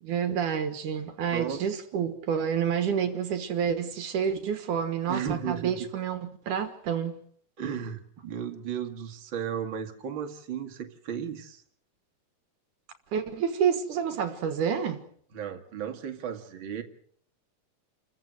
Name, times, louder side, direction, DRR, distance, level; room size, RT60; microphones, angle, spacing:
voice 1, 0.0-7.2 13.1-15.0, right 7 dB, 70° right, 2.9 m, -29 dB
voice 2, 5.1-5.9 7.6-11.6 15.3-16.8, right 8 dB, 40° right, 2.6 m, -34 dB
29.0 x 15.0 x 7.9 m
omnidirectional pair, 3.7 m